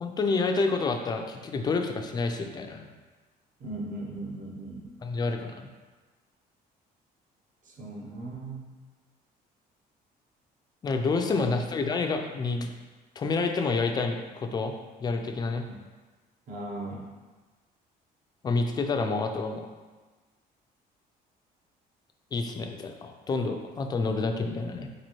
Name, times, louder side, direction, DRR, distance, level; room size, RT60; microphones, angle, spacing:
voice 1, 0.0-2.9 5.0-5.7 10.8-12.7 13.2-15.6 18.4-19.7 22.3-24.9, left 3 dB, 25° left, 5 dB, 0.3 m, -28 dB
voice 2, 3.6-4.9 7.7-8.7 11.4-11.6 15.7-15.8 16.5-17.1, right 2 dB, 50° right, -2 dB, 0.8 m, -38 dB
4.2 x 2.6 x 3.0 m, 1.3 s
cardioid pair, 110°, 17 cm